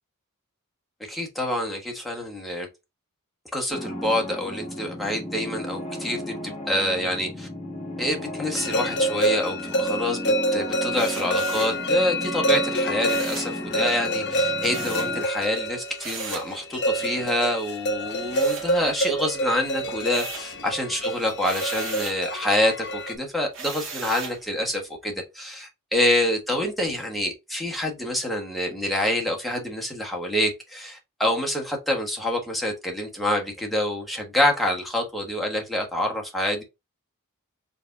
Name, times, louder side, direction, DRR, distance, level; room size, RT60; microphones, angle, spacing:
voice 1, 1.1-2.7 3.5-6.4 6.7-7.5 8.0-36.6, left 1 dB, ahead, 1.2 m, -27 dB
sound 1, 3.7-15.2, equal, 30° left, 1.2 m, -35 dB
sound 2, 8.6-23.1, right 1 dB, 50° left, 0.7 m, -27 dB
sound 3, 10.9-11.8 13.0-13.6 14.7-15.2 16.0-16.5 18.3-19.2 19.6-20.6 21.4-22.2 23.5-24.4, right 5 dB, 60° right, 1.8 m, -37 dB
4.8 x 3.5 x 2.6 m
head